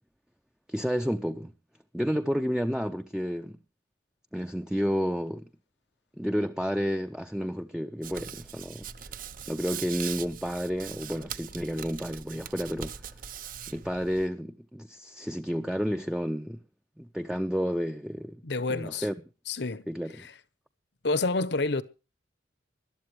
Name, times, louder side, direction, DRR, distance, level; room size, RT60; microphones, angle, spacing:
voice 1, 0.7-1.5 1.9-3.6 4.3-5.4 6.2-8.9 9.5-13.1 13.7-16.6 17.0-18.4 18.7-19.1 19.9-20.1, equal, 5° right, 0.6 m, -31 dB
Hands, 8.0-14.3, right 8 dB, 45° right, 0.8 m, -41 dB
voice 2, 18.4-19.1 19.5-19.9 20.1-20.3 21.0-21.8, left 3 dB, 65° left, 1.0 m, -28 dB
21.0 x 12.5 x 3.2 m
head